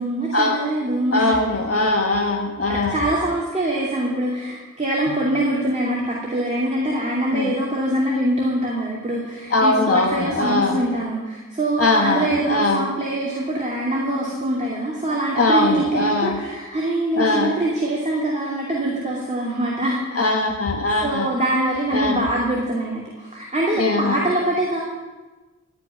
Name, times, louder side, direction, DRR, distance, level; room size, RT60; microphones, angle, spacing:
voice 1, 0.0-1.8 2.7-20.2 21.0-24.8, right 1 dB, 25° right, -4 dB, 2.8 m, -24 dB
voice 2, 1.1-3.0 7.3-7.5 9.5-10.8 11.8-12.9 15.3-16.4 17.1-17.5 20.2-21.3 21.9-22.2 23.8-24.2, left 2 dB, 50° left, 2 dB, 1.4 m, -21 dB
16.5 x 6.0 x 9.6 m, 1.2 s
wide cardioid pair, 80°, 31 cm